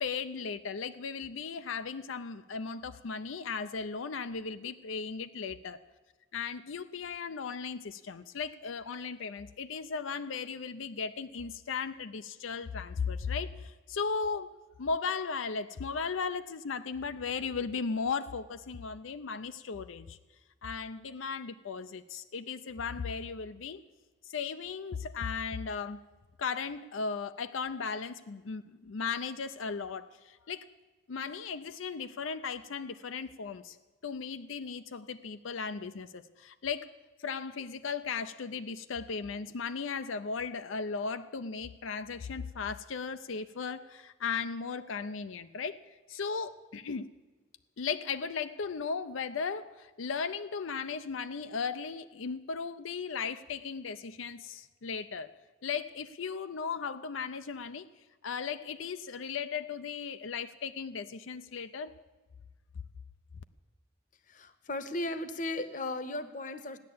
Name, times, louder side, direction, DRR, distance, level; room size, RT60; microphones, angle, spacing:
voice 1, 0.0-5.8 6.3-20.2 20.6-23.8 24.3-26.0 26.4-30.7 31.1-33.8 34.0-36.9 37.2-47.1 47.8-55.3 55.6-57.9 58.2-61.9, left 5 dB, 85° left, 10 dB, 0.5 m, -36 dB
voice 2, 64.3-66.8, left 2 dB, 40° left, 12 dB, 0.9 m, -36 dB
15.5 x 10.5 x 8.5 m, 1.2 s
head